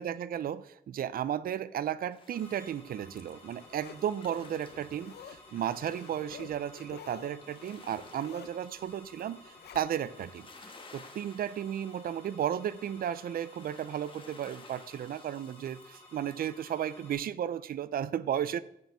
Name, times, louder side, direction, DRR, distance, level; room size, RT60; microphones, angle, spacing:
voice 1, 0.0-10.5 10.9-18.6, right 10 dB, 60° right, 17 dB, 0.4 m, -34 dB
sound 1, 2.1-16.9, left 3 dB, 30° left, 1.2 m, -57 dB
sound 2, 2.3-17.1, left 1 dB, 10° left, 2.3 m, -55 dB
Zipper (clothing), 2.7-10.3 10.7-10.8, left 8 dB, 75° left, 0.6 m, -52 dB
7.5 x 5.5 x 7.3 m, 0.79 s
wide cardioid pair, 175°, 17 cm